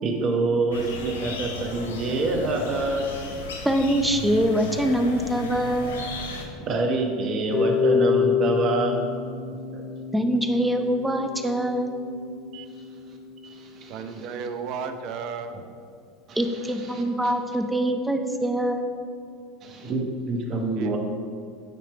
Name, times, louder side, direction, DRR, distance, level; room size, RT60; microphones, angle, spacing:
voice 1, 0.0-3.2 6.6-9.0 9.5-9.8 13.4-13.9 16.3-16.4 16.6-17.3 19.6-21.0, right 3 dB, 45° right, 3 dB, 1.1 m, -26 dB
sound 1, 0.7-6.4, left 3 dB, 90° left, 0.9 m, -36 dB
voice 2, 3.6-6.0 10.1-11.9 16.4-18.9, right 1 dB, 5° right, 6 dB, 0.7 m, -24 dB
Harp, 7.5-13.6, left 6 dB, 45° left, 1.3 m, -27 dB
voice 3, 13.9-15.6 20.8-21.0, right 6 dB, 60° right, 8 dB, 0.6 m, -33 dB
9.3 x 3.3 x 4.5 m, 2.3 s
hypercardioid pair, 90°, 0 cm